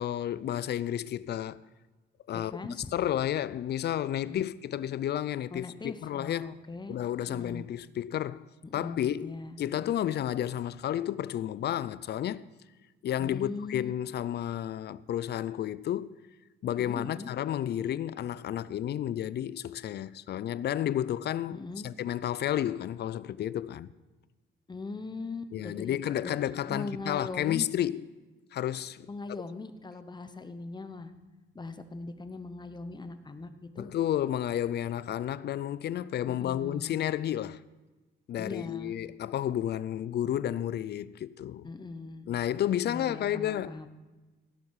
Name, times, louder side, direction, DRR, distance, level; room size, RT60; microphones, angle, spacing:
voice 1, 0.0-1.6 2.3-2.5 2.9-6.6 6.9-8.4 8.7-12.4 13.0-16.2 16.6-21.6 21.8-23.9 25.5-28.0 28.5-29.1 33.8-37.6 38.3-41.7 42.3-43.9, left 11 dB, 55° left, 0.4 m, -31 dB
voice 2, 2.3-2.9 4.2-4.5 5.5-7.0 7.3-7.7 8.6-9.6 13.2-13.9 16.8-17.3 21.5-21.9 24.7-26.4 26.7-27.7 29.1-31.1 31.5-33.9 36.3-37.0 38.4-39.0 41.6-42.3 42.8-43.9, left 3 dB, 20° left, 0.9 m, -40 dB
17.0 x 7.2 x 4.8 m
cardioid pair, 90°, 20 cm